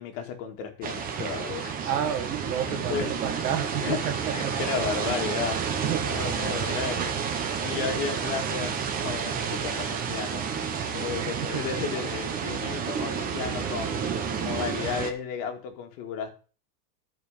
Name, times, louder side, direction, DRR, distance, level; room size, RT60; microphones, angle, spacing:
voice 1, 0.0-1.8 2.7-3.1 3.8-7.1 7.4-14.0 14.4-16.3, left 6 dB, 50° left, 4 dB, 2.4 m, -34 dB
sound 1, 0.8-15.1, right 6 dB, 15° right, 0.8 m, -30 dB
voice 2, 1.8-4.1 4.4-4.6 5.8-6.1 11.2-11.8, right 9 dB, 65° right, 7 dB, 2.0 m, -31 dB
13.0 x 5.0 x 5.2 m, 0.37 s
supercardioid pair, 155°, 49 cm